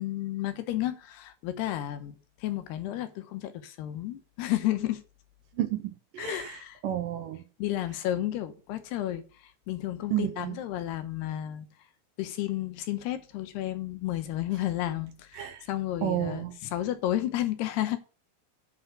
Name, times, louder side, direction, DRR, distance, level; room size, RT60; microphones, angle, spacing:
voice 1, 0.0-5.0 6.2-6.8 7.6-11.7 12.2-18.0, left 13 dB, 85° left, 3.1 m, -32 dB
voice 2, 5.6-6.6 6.8-7.4 10.1-10.6 15.4-15.6 16.0-16.5, right 12 dB, 75° right, 2.2 m, -31 dB
7.9 x 5.8 x 7.9 m
omnidirectional pair, 4.5 m